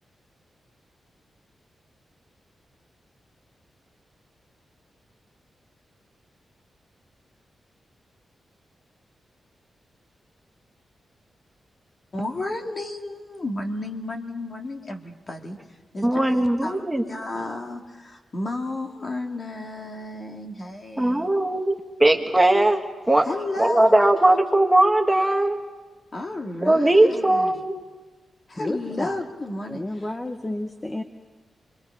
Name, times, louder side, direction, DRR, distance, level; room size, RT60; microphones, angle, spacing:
voice 1, 12.1-15.6 15.9-16.3 16.6-21.3 23.2-24.2 26.1-27.5 28.5-30.1, left 2 dB, 40° left, 2 dB, 2.3 m, -32 dB
voice 2, 16.0-17.0 21.0-21.7 22.0-22.8 23.1-23.2 23.6-25.6 26.6-27.7, right 1 dB, 10° right, 3 dB, 1.5 m, -19 dB
voice 3, 28.6-29.2 29.7-31.0, left 1 dB, 20° left, 7 dB, 1.0 m, -31 dB
28.0 x 22.5 x 5.0 m, 1.3 s
wide cardioid pair, 100°, 0 cm